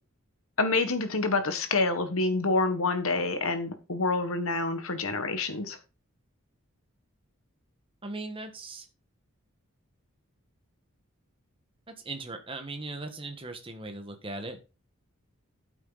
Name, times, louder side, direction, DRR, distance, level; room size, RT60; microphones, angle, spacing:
voice 1, 0.6-5.8, left 3 dB, 75° left, 1.7 m, -27 dB
voice 2, 8.0-8.8 12.0-14.6, right 2 dB, 25° right, 1.5 m, -38 dB
9.5 x 8.0 x 4.1 m
head